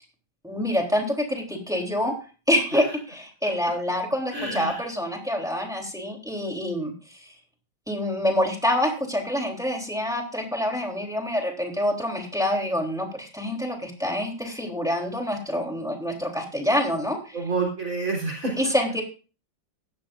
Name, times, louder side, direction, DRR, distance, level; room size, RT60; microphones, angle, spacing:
voice 1, 0.4-2.1 2.5-7.3 7.9-17.5 18.6-19.0, left 1 dB, ahead, 1 dB, 3.1 m, -26 dB
voice 2, 4.3-4.7 17.3-18.5, right 3 dB, 45° right, 0 dB, 4.2 m, -28 dB
16.5 x 13.0 x 2.6 m, 0.35 s
omnidirectional pair, 2.0 m